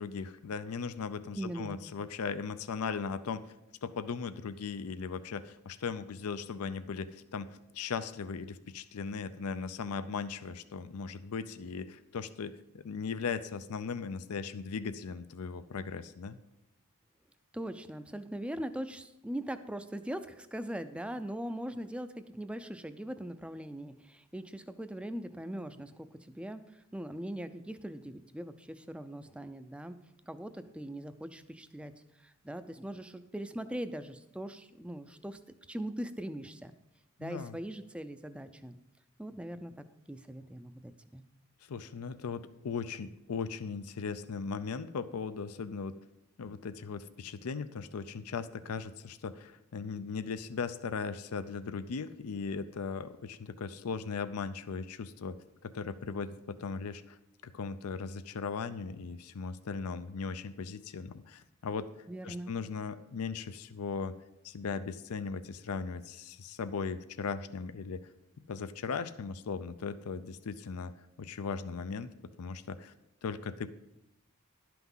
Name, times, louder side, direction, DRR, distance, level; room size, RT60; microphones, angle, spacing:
voice 1, 0.0-3.5 3.8-16.4 37.2-37.6 41.6-45.9 46.4-55.4 55.6-61.9 62.2-64.1 64.4-68.1 68.5-70.9 71.2-72.1 72.4-72.9 73.2-73.7, left 5 dB, 80° left, 13 dB, 0.5 m, -38 dB
voice 2, 1.3-1.8 17.5-30.0 30.3-31.9 32.2-35.4 35.7-36.7 37.2-38.8 39.2-41.2 62.1-62.5, right 1 dB, 5° right, 10 dB, 0.4 m, -41 dB
11.5 x 5.9 x 5.5 m, 0.88 s
head